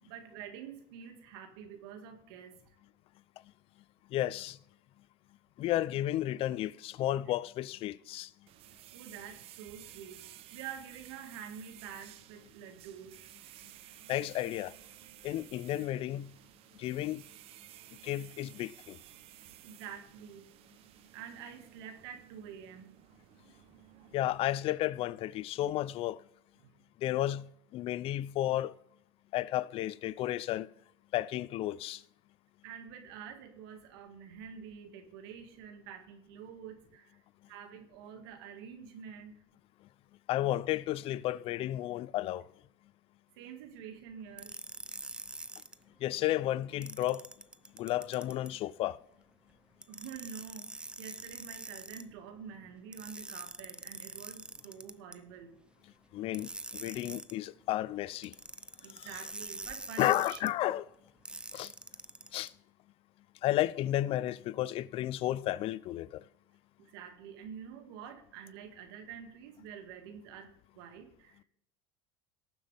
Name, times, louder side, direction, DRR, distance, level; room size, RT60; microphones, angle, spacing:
voice 1, 0.0-2.8 8.9-13.3 19.3-20.5 21.1-23.0 26.6-26.8 32.6-37.2 37.5-39.3 43.3-44.6 49.9-55.6 58.8-60.4 66.8-71.4, right 7 dB, 80° right, 2.0 m, -47 dB
voice 2, 4.1-4.6 5.6-8.3 14.1-14.7 15.2-16.3 16.7-17.2 18.0-19.0 24.1-26.2 27.0-28.7 29.3-30.7 31.1-32.0 40.3-42.5 46.0-47.3 47.7-49.0 56.1-58.3 58.9-59.1 60.0-60.8 61.5-61.7 62.3-62.5 63.4-66.2, left 14 dB, 50° left, 0.6 m, -32 dB
sound 1, 8.5-24.5, right 14 dB, 55° right, 0.7 m, -55 dB
sound 2, 44.4-45.7 46.8-48.5 49.8-52.0 52.9-55.2 56.3-57.3 58.2-60.5 61.2-62.5, right 2 dB, 10° right, 0.6 m, -45 dB
18.0 x 7.4 x 3.5 m
supercardioid pair, 115°, 12 cm